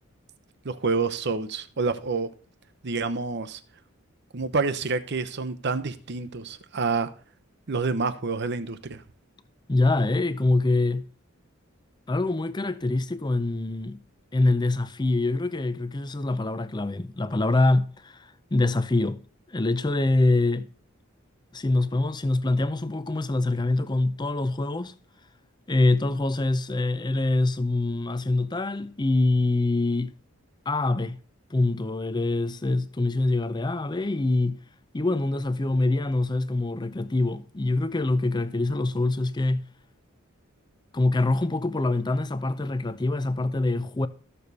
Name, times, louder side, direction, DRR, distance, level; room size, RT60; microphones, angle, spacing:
voice 1, 0.6-2.3 2.8-3.6 4.3-7.1 7.7-9.0, right 4 dB, 55° right, 0.8 m, -28 dB
voice 2, 9.7-11.1 12.1-14.0 14.3-20.7 21.5-24.9 25.7-30.1 30.7-31.2 31.5-34.6 34.9-39.6 40.9-44.1, left 2 dB, 20° left, 0.5 m, -25 dB
13.5 x 6.9 x 4.1 m
head